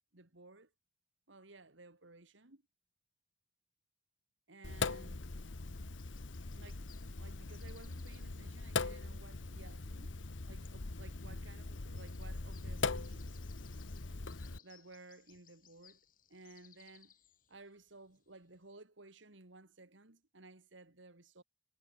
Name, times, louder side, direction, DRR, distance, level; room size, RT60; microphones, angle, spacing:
voice 1, 0.1-0.7 1.3-2.6 4.5-5.3 6.6-6.9 7.2-13.4 14.5-16.0 16.3-17.1 17.5-21.4, right 2 dB, 85° right, 2.5 m, -57 dB
Sink (filling or washing), 4.6-14.6, left 3 dB, 85° left, 1.2 m, -41 dB
sound 1, 5.9-18.7, left 10 dB, 45° left, 3.6 m, -67 dB
head